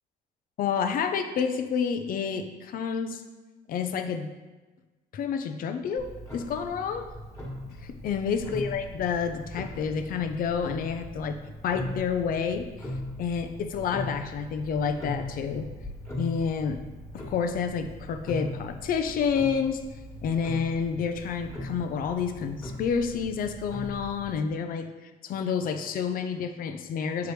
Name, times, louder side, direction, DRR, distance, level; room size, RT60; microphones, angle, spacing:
voice 1, 0.6-3.2 3.7-4.3 5.1-7.1 7.8-11.4 11.6-12.9 13.2-15.7 16.2-16.8 17.1-19.8 20.2-27.3, left 6 dB, 55° left, 8 dB, 0.6 m, -29 dB
Clock, 6.0-24.4, left 1 dB, 15° left, 1.7 m, -40 dB
6.8 x 4.7 x 3.2 m, 1.2 s
cardioid pair, 110°, 17 cm